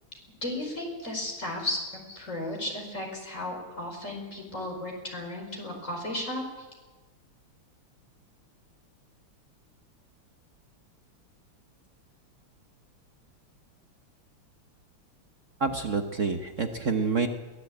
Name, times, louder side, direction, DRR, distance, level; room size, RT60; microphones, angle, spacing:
voice 1, 0.4-1.8 2.1-6.7, left 1 dB, 35° left, 1 dB, 5.0 m, -34 dB
voice 2, 15.6-17.3, right 5 dB, 45° right, 6 dB, 1.2 m, -27 dB
22.0 x 16.5 x 8.5 m, 1.3 s
omnidirectional pair, 2.4 m